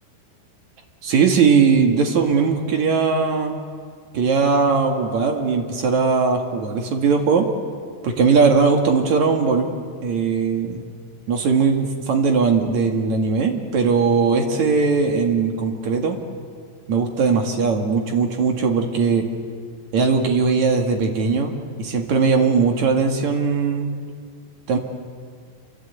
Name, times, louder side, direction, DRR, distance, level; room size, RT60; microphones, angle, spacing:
voice 1, 1.0-3.6 4.1-7.5 8.0-9.7 10.0-10.9 11.3-16.2 16.9-19.3 19.9-23.9 24.7-24.8, right 5 dB, 55° right, 3 dB, 2.3 m, -19 dB
27.5 x 25.0 x 8.2 m, 2.1 s
omnidirectional pair, 5.6 m